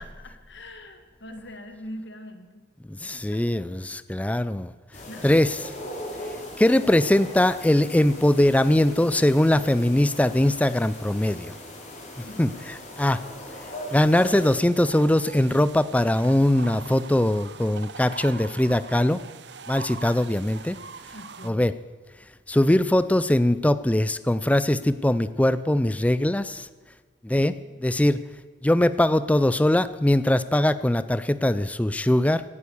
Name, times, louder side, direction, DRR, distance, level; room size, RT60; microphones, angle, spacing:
voice 1, 0.0-2.7 3.1-3.4 5.1-5.4 12.2-12.6 21.1-21.7, left 1 dB, 60° left, 8 dB, 1.6 m, -42 dB
voice 2, 2.9-4.7 5.2-5.6 6.6-11.5 12.4-13.2 13.9-19.2 19.7-20.8 21.4-21.7 22.5-26.7 27.2-28.2 28.6-32.4, left 1 dB, 5° left, 14 dB, 0.3 m, -21 dB
sound 1, 4.9-14.5, left 1 dB, 40° left, 3.7 m, -39 dB
sound 2, 14.1-21.5, right 5 dB, 60° right, 0.8 m, -42 dB
17.0 x 9.4 x 7.0 m, 1.4 s
head